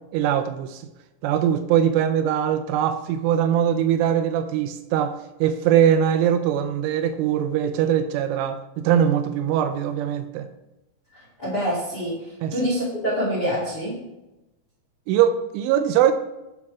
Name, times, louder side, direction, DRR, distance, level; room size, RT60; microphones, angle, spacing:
voice 1, 0.1-0.8 1.2-10.5 12.4-12.5 15.1-16.1, right 9 dB, 85° right, 9 dB, 3.0 m, -21 dB
voice 2, 11.4-12.1 12.5-14.0, equal, 30° left, -4 dB, 2.1 m, -25 dB
10.5 x 6.6 x 4.7 m, 0.96 s
omnidirectional pair, 5.8 m